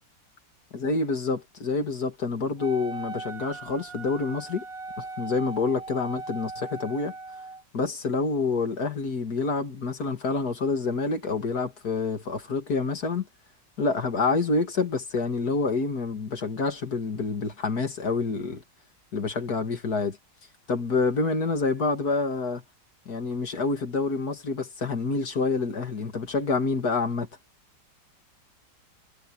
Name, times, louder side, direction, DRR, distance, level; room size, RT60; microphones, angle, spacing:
voice 1, 0.7-4.6 5.0-7.1 7.7-13.3 13.8-18.6 19.1-20.2 20.7-22.6 23.1-27.3, left 4 dB, 60° left, 2.8 m, -27 dB
Wind instrument woodwind instrument, 2.6-7.6, right 3 dB, 55° right, 1.5 m, -39 dB
omnidirectional pair, 1.9 m